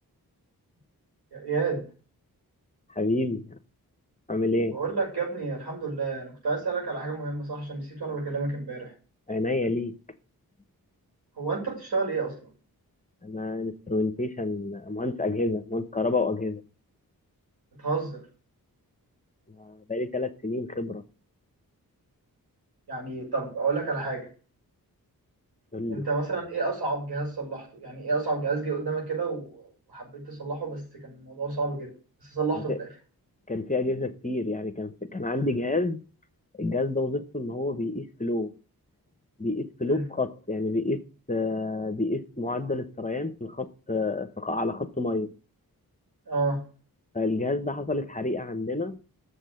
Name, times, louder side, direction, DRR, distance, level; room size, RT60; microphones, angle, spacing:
voice 1, 1.3-1.8 4.7-8.9 11.4-12.3 17.8-18.2 22.9-24.3 25.9-31.9 32.2-32.9 39.9-40.0 46.3-46.6, right 4 dB, 85° right, 6.1 m, -30 dB
voice 2, 2.9-3.6 4.3-4.8 9.3-10.0 13.2-16.6 19.5-21.0 25.7-26.1 32.5-32.8 33.5-36.0 36.6-38.5 39.4-41.0 41.3-45.3 47.1-49.0, left 2 dB, 20° left, 1.0 m, -29 dB
7.3 x 6.5 x 7.7 m
cardioid pair, 65°, 37 cm